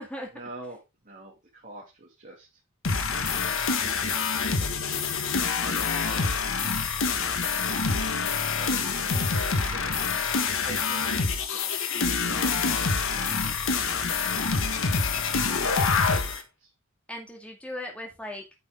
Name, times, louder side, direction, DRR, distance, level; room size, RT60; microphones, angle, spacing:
voice 1, 0.3-2.5 3.4-5.2 8.6-10.0 10.3-14.4 15.4-16.7, right 2 dB, 40° right, -3 dB, 2.9 m, -46 dB
sound 1, 2.8-16.4, left 5 dB, 65° left, 1.5 m, -26 dB
voice 2, 5.7-6.5 15.8-15.9 17.1-18.4, left 1 dB, 5° left, 1 dB, 2.3 m, -38 dB
9.4 x 6.3 x 3.7 m, 0.24 s
head